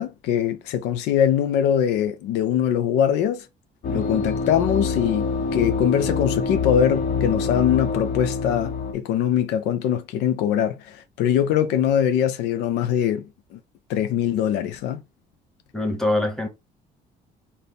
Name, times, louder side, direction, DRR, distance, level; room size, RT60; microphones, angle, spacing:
voice 1, 0.0-3.5 3.9-13.2 13.5-13.6 13.9-15.0, left 9 dB, 85° left, 0.6 m, -22 dB
sound 1, 3.8-8.9, left 4 dB, 50° left, 0.7 m, -25 dB
voice 2, 15.7-16.5, left 2 dB, ahead, 1.2 m, -24 dB
3.3 x 2.8 x 4.1 m
cardioid pair, 110°, 17 cm